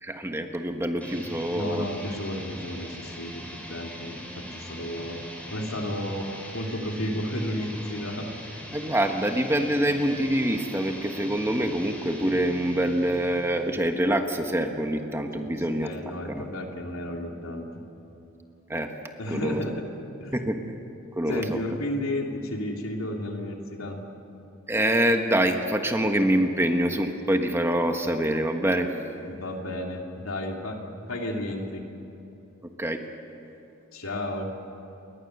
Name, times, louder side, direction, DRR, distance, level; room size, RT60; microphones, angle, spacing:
voice 1, 0.0-1.9 8.7-15.9 16.2-16.5 18.7-18.9 19.3-19.6 20.3-20.8 21.2-21.6 24.7-28.9 32.8-33.0, right 1 dB, 10° right, 5 dB, 1.3 m, -25 dB
sound 1, 1.0-13.8, equal, 5° left, 4.1 m, -41 dB
voice 2, 1.5-5.2 5.5-6.3 6.5-8.3 15.4-17.7 19.2-19.9 20.2-20.5 21.3-24.0 29.3-30.8 31.1-31.8 33.9-34.5, left 1 dB, 80° left, 1 dB, 3.2 m, -32 dB
29.0 x 22.0 x 6.8 m, 3.0 s
head